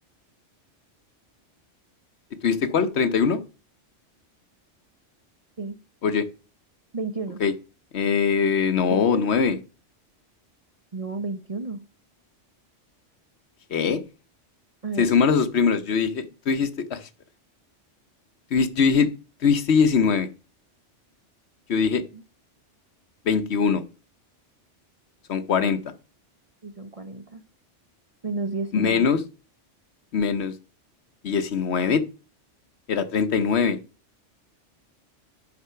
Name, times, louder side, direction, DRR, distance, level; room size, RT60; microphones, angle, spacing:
voice 1, 2.4-3.4 6.0-6.2 7.4-7.5 7.9-9.6 13.7-14.0 15.0-17.1 18.5-19.1 19.4-20.3 21.7-22.0 23.3-23.8 25.3-25.8 28.7-29.2 30.1-30.5 31.2-32.0 32.9-33.8, left 6 dB, 65° left, 12 dB, 1.1 m, -22 dB
voice 2, 6.9-7.4 8.9-9.3 10.9-11.8 14.8-15.1 22.1-22.2 26.6-27.4 28.2-29.1, right 3 dB, 35° right, 8 dB, 0.7 m, -32 dB
9.7 x 6.0 x 5.7 m, 0.34 s
omnidirectional pair, 1.2 m